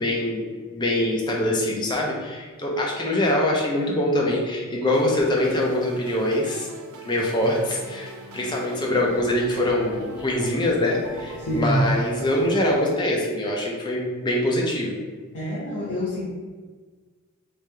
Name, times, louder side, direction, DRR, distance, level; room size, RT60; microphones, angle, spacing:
voice 1, 0.0-6.7 7.0-15.0, left 1 dB, 20° left, -2 dB, 0.6 m, -24 dB
sound 1, 4.9-12.9, right 1 dB, 75° right, 0.5 m, -40 dB
voice 2, 11.4-11.9 15.3-16.3, right 1 dB, 80° left, -9 dB, 0.9 m, -25 dB
3.3 x 2.7 x 3.4 m, 1.5 s
head